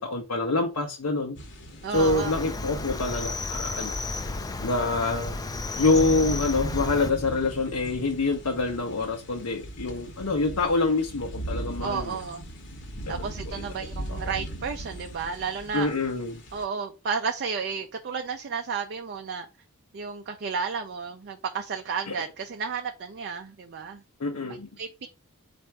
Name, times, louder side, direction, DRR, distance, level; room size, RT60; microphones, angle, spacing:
voice 1, 0.0-1.4 1.9-4.0 4.6-5.3 5.8-12.2 13.1-13.2 13.5-13.6 15.7-16.4 22.1-22.2 24.2-24.7, left 3 dB, 75° left, 0.8 m, -26 dB
sound 1, 1.4-16.6, right 1 dB, 55° left, 1.0 m, -39 dB
voice 2, 1.8-2.3 11.8-12.5 13.1-15.9 16.5-19.5 19.9-24.0 24.8-25.1, right 5 dB, 50° right, 0.5 m, -32 dB
Cricket, 1.9-7.1, left 3 dB, 15° left, 0.4 m, -33 dB
4.3 x 2.5 x 4.5 m
head